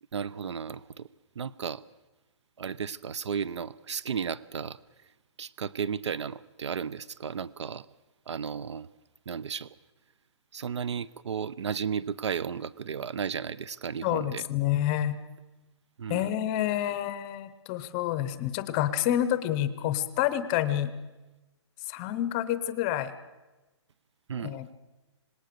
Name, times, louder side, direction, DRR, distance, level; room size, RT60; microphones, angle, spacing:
voice 1, 0.1-1.1 1.4-1.8 2.6-4.8 5.4-7.9 8.3-8.9 9.3-9.7 10.5-14.4 16.0-16.3 24.3-24.6, right 7 dB, 75° right, 21 dB, 0.7 m, -34 dB
voice 2, 14.0-15.1 16.1-20.9 21.8-23.1 24.4-24.7, left 12 dB, 15° left, 13 dB, 0.7 m, -28 dB
26.0 x 20.0 x 6.7 m, 1.1 s
hypercardioid pair, 180°, 15 cm